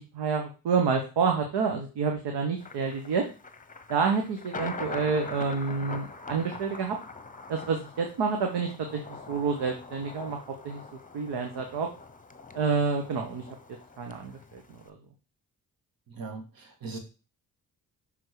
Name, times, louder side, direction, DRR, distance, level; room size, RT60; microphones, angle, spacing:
voice 1, 0.0-3.3 3.9-7.0 7.5-9.0 9.3-10.4 10.6-10.8 11.1-11.9 12.5-13.4 14.0-14.8, right 5 dB, 75° right, 3 dB, 1.2 m, -28 dB
Thunder, 2.6-14.9, left 3 dB, 20° left, 0.9 m, -43 dB
voice 2, 16.1-17.0, right 4 dB, 55° right, 4 dB, 1.8 m, -39 dB
6.1 x 3.7 x 4.9 m, 0.34 s
supercardioid pair, 45°, 41 cm